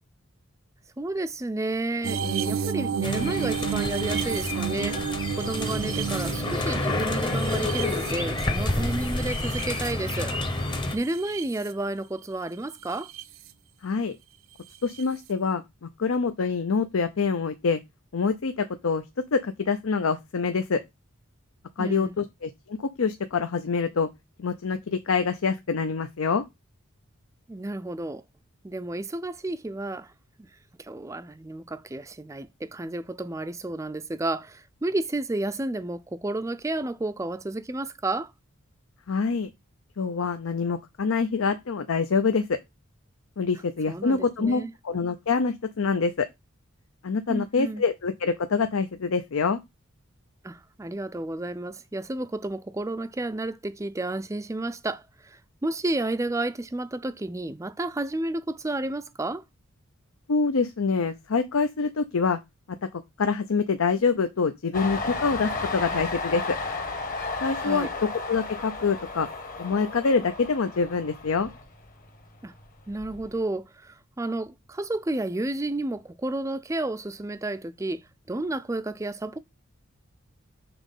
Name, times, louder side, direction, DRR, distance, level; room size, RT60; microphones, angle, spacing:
voice 1, 1.0-10.3 10.9-13.1 21.8-22.2 27.5-28.2 28.6-30.1 30.4-30.5 30.8-38.3 43.9-44.7 47.3-47.8 50.4-59.4 67.6-67.9 72.4-72.5 72.9-79.4, right 2 dB, 15° right, 0.4 m, -31 dB
sound 1, 2.0-10.4 10.9-11.7 12.9-13.2 15.0-15.1, right 7 dB, 70° right, 0.6 m, -31 dB
sound 2, 3.0-11.0, left 2 dB, 20° left, 0.8 m, -29 dB
voice 2, 13.8-14.1 14.8-17.8 18.1-19.0 19.3-20.8 21.8-24.1 24.4-26.4 39.1-39.5 40.0-42.6 43.4-46.3 47.0-49.6 60.3-62.4 63.2-66.6 67.4-69.3 69.6-71.5, left 5 dB, 75° left, 0.6 m, -26 dB
Train, 64.7-72.2 72.5-73.4, left 3 dB, 40° left, 1.2 m, -33 dB
6.0 x 3.7 x 5.3 m
head